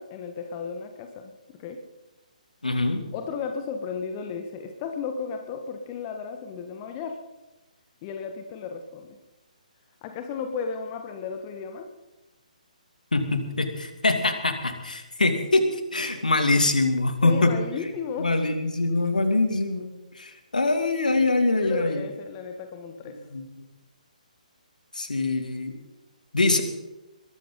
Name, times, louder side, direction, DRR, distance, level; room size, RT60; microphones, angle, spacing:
voice 1, 0.0-1.3 1.6-1.8 3.1-7.2 8.0-9.2 10.0-11.9 17.2-18.3 21.6-23.2, left 5 dB, 25° left, 5 dB, 1.4 m, -34 dB
voice 2, 2.6-3.0 13.1-17.5 18.2-22.0 23.3-23.5 24.9-25.7 26.3-26.6, left 2 dB, 70° left, 6 dB, 2.7 m, -24 dB
22.0 x 13.0 x 4.0 m, 1.0 s
figure-of-eight pair, 135°, 4 cm